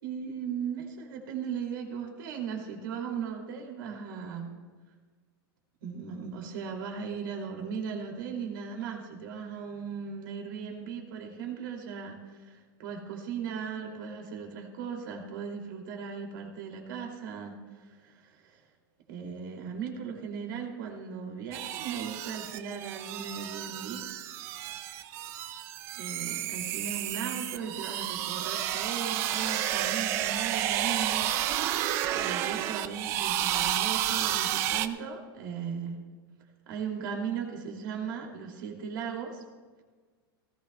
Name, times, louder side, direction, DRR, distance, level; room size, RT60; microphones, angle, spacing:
voice 1, 0.0-4.5 5.8-18.6 19.1-24.0 26.0-36.0 36.7-39.4, right 6 dB, 55° right, 1 dB, 2.7 m, -37 dB
sound 1, 21.5-34.9, right 12 dB, 20° right, 0.3 m, -31 dB
18.0 x 16.5 x 2.3 m, 1.4 s
supercardioid pair, 175°, 13 cm